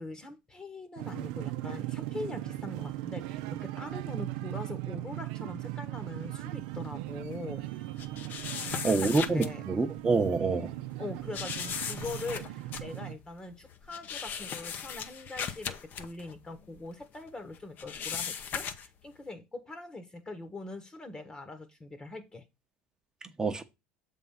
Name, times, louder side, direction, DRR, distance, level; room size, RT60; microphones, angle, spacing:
voice 1, 0.0-7.7 8.6-9.6 11.0-22.5, left 2 dB, 20° left, 1.1 m, -42 dB
sound 1, 1.0-13.1, right 16 dB, 80° right, 0.6 m, -38 dB
sound 2, 8.0-9.5 10.0-10.2 11.3-17.3 17.5-19.0, left 7 dB, 50° left, 0.8 m, -38 dB
voice 2, 8.8-10.7 23.4-23.6, right 3 dB, 15° right, 0.9 m, -27 dB
7.1 x 3.6 x 5.6 m
supercardioid pair, 105°, 4 cm